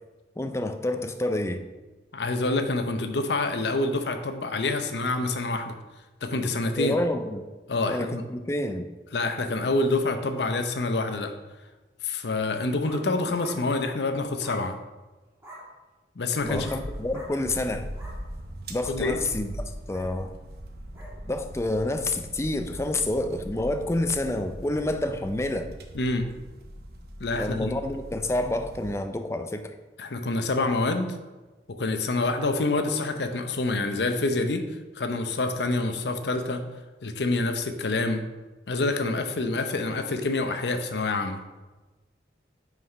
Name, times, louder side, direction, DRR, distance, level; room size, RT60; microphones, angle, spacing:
voice 1, 0.4-1.6 6.8-7.5 7.9-8.9 16.4-17.9 18.7-19.6 19.9-20.4 21.3-25.7 27.4-29.7, left 1 dB, 15° left, 8 dB, 0.4 m, -28 dB
voice 2, 2.1-5.7 6.2-7.0 7.7-8.2 9.1-11.3 12.0-14.8 16.2-16.7 18.9-19.2 25.9-26.3 27.2-27.7 30.0-31.2 31.7-34.6 34.9-36.6 37.0-38.2 38.7-41.4, left 2 dB, 75° left, 7 dB, 0.7 m, -27 dB
sound 1, 12.5-13.1 13.4-13.6 14.4-14.7 15.4-15.7 16.6-16.8 17.1-17.3 17.8-18.2 19.0-19.2 19.9-20.1 20.9-21.1, equal, 15° right, 1.4 m, -44 dB
sound 2, 16.4-29.0, right 1 dB, 60° right, 0.8 m, -40 dB
5.8 x 4.8 x 5.3 m, 1.2 s
head